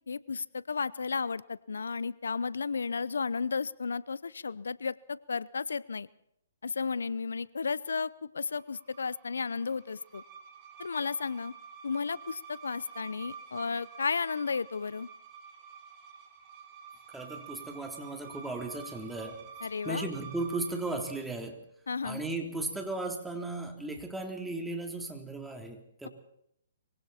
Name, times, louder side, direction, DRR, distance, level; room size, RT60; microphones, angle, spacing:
voice 1, 0.1-6.1 6.6-10.2 10.8-11.5 11.8-15.1 19.6-20.1 21.9-22.2, left 5 dB, 80° left, 20 dB, 0.7 m, -33 dB
sound 1, 8.6-21.2, right 6 dB, 30° right, 4.6 m, -49 dB
voice 2, 17.1-19.4 19.8-21.6 22.0-26.1, right 2 dB, 5° right, 2 dB, 3.6 m, -36 dB
25.0 x 24.5 x 4.4 m, 0.74 s
hypercardioid pair, 135°, 0 cm